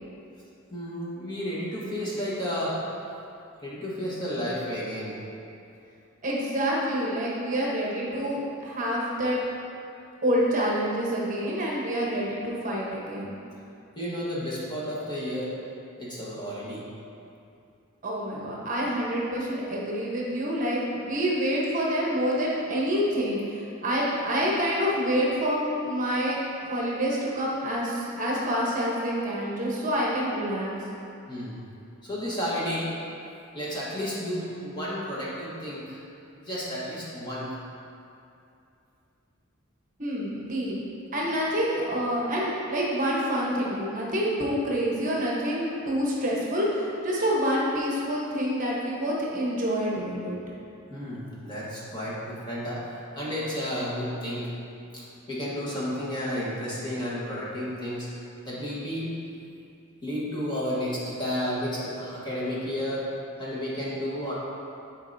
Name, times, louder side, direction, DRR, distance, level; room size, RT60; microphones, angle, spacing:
voice 1, 0.7-2.8 3.6-5.2 14.0-15.5 16.0-16.8 31.3-31.6 32.0-32.9 33.5-36.0 36.3-37.5 50.9-52.8 53.2-54.5 54.9-55.0 55.3-58.1 58.5-59.1 60.0-63.1 63.4-64.3, equal, 20° left, -8 dB, 1.3 m, -32 dB
voice 2, 6.2-9.4 10.2-13.3 18.0-30.7 40.0-40.8 41.1-50.4, equal, 40° right, -4 dB, 1.1 m, -27 dB
11.0 x 4.5 x 2.7 m, 2.6 s
head